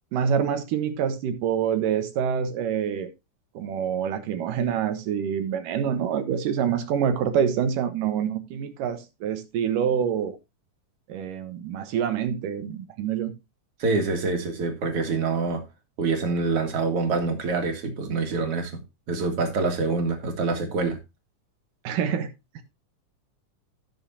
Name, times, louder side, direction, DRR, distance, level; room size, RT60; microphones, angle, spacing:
voice 1, 0.1-3.1 3.5-10.4 11.1-13.3 21.8-22.3, right 8 dB, 85° right, 2.9 m, -26 dB
voice 2, 13.8-15.6 16.0-18.8 19.1-21.0, right 4 dB, 50° right, 2.7 m, -26 dB
16.5 x 6.3 x 2.8 m
omnidirectional pair, 3.7 m